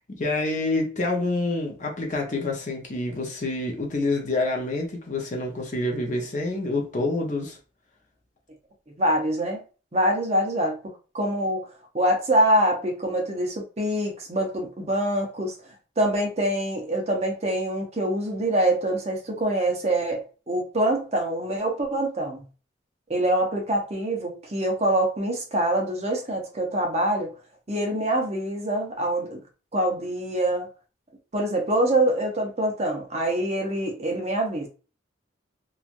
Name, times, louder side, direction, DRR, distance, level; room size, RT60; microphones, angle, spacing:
voice 1, 0.0-7.6, left 2 dB, 40° left, 0.6 m, -27 dB
voice 2, 9.0-9.6 9.9-10.8 11.1-11.7 11.9-15.5 16.0-22.4 23.1-27.3 27.7-29.4 29.7-30.7 31.3-34.7, right 1 dB, 35° right, 0.7 m, -25 dB
3.0 x 2.3 x 2.5 m
head